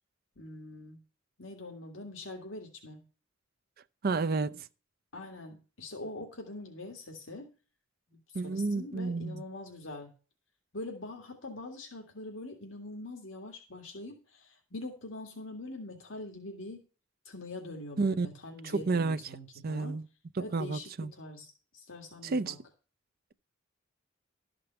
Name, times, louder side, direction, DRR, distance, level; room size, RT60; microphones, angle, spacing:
voice 1, 0.4-1.0 1.4-3.0 5.1-7.5 8.1-10.1 10.7-16.8 17.3-20.0 20.4-22.6, left 2 dB, 75° left, 2.0 m, -43 dB
voice 2, 4.0-4.7 8.3-9.4 18.0-18.3 18.6-19.2 19.6-20.1 20.5-21.1 22.2-22.6, right 3 dB, 50° right, 0.5 m, -30 dB
12.5 x 5.2 x 6.9 m
head